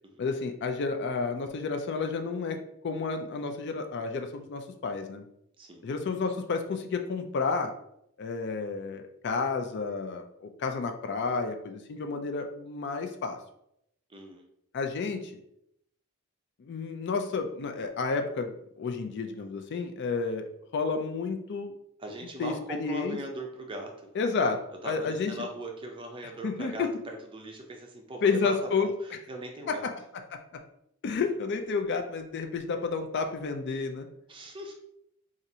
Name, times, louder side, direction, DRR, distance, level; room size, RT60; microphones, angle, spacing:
voice 1, 0.2-5.2 5.8-7.7 8.2-13.4 14.7-15.4 16.6-21.7 22.4-23.2 24.1-25.3 26.4-26.9 28.2-29.2 29.7-30.0 30.3-30.6 31.0-34.1, left 4 dB, 50° left, 6 dB, 0.3 m, -31 dB
voice 2, 5.6-5.9 14.1-14.4 22.0-24.1 24.8-28.5 28.8-29.9 34.3-34.7, right 1 dB, 20° right, 2 dB, 0.5 m, -40 dB
4.2 x 2.5 x 2.7 m, 0.76 s
head